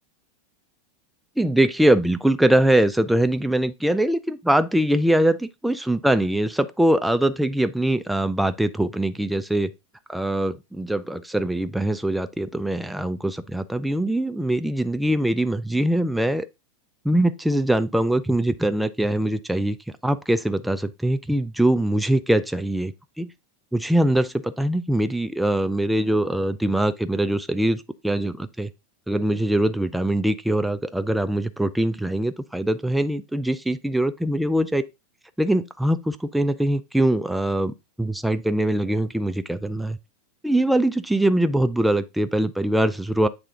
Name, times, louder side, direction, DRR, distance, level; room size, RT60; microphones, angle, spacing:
voice 1, 1.4-9.7 10.1-16.5 17.0-19.8 20.0-23.3 23.7-28.7 29.1-34.8 35.4-40.0 40.4-43.3, right 1 dB, ahead, 0.4 m, -22 dB
8.2 x 3.4 x 3.7 m
supercardioid pair, 160°, 0 cm